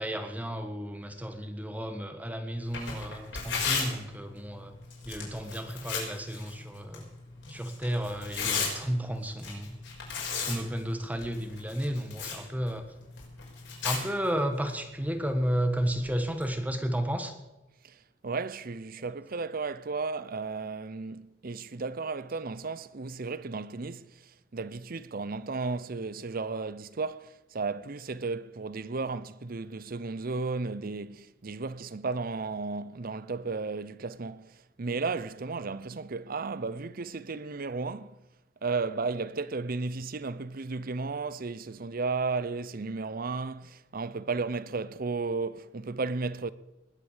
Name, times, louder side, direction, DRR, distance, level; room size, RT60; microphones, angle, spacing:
voice 1, 0.0-4.8 5.0-7.0 7.5-9.7 10.3-12.9 13.8-17.3, equal, 10° right, 1.4 m, -32 dB
Tearing, 2.6-16.5, left 5 dB, 75° left, 5.7 m, -37 dB
voice 2, 18.2-24.0 24.5-34.5 34.8-38.2 38.6-46.5, right 4 dB, 50° right, 0.7 m, -34 dB
20.0 x 8.0 x 7.4 m
head